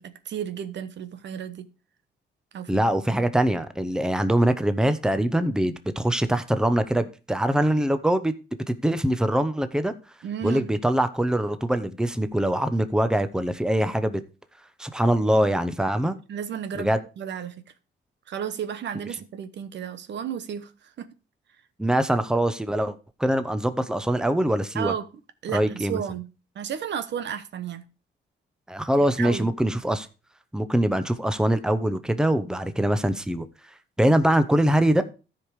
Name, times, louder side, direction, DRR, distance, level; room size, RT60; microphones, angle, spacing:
voice 1, 0.0-1.7 2.5-2.8 10.2-10.7 16.3-17.5 18.3-20.7 21.0-21.1 24.7-25.1 25.4-26.3 26.5-27.8 29.2-29.5, right 8 dB, 65° right, 1.0 m, -33 dB
voice 2, 2.7-8.3 8.7-9.9 10.4-14.2 14.8-16.2 16.7-17.0 21.8-22.9 23.2-24.9 25.5-26.0 28.7-30.1 30.5-33.5 34.0-35.0, right 1 dB, 5° right, 0.9 m, -23 dB
13.5 x 5.1 x 4.8 m
cardioid pair, 90°, 20 cm